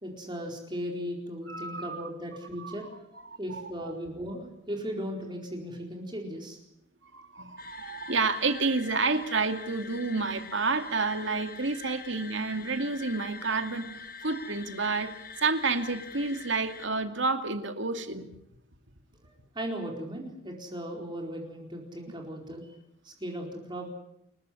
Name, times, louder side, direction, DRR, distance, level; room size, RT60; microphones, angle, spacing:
voice 1, 0.0-6.6 19.5-22.7 23.0-23.9, equal, 20° right, 1 dB, 4.4 m, -37 dB
voice 2, 1.5-2.1 2.6-2.9 3.3-3.9 7.0-13.9 14.2-18.3, right 4 dB, 65° right, 7 dB, 2.4 m, -30 dB
sound 1, 7.6-16.9, left 5 dB, 45° left, 1.6 m, -45 dB
29.0 x 15.0 x 9.8 m, 0.81 s
head